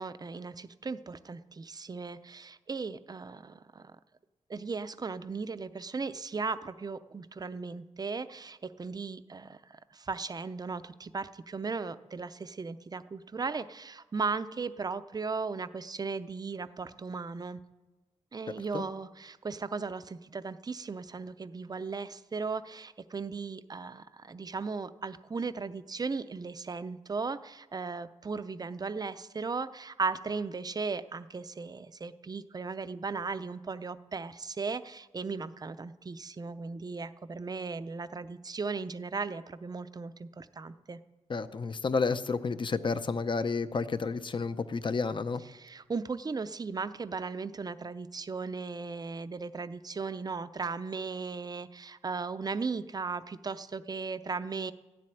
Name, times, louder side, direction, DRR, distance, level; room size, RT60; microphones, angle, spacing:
voice 1, 0.0-3.9 4.5-17.6 18.3-41.0 45.5-54.7, right 4 dB, 30° right, 12 dB, 0.5 m, -37 dB
voice 2, 41.3-45.4, left 4 dB, 40° left, 13 dB, 0.6 m, -31 dB
13.5 x 7.6 x 10.0 m, 1.1 s
wide cardioid pair, 130°, 13 cm